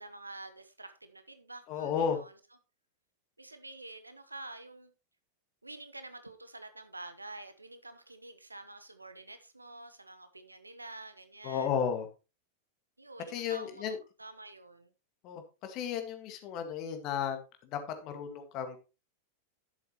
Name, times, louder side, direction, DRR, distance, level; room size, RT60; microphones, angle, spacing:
voice 1, 0.0-2.4 3.4-4.9 5.6-11.7 13.0-13.8 14.2-14.9, right 2 dB, 80° right, 1.1 m, -48 dB
voice 2, 1.7-2.2 11.4-12.1 13.3-14.0 15.2-18.8, left 7 dB, 40° left, 1.9 m, -34 dB
10.5 x 7.8 x 3.1 m
figure-of-eight pair, 90°, 0 cm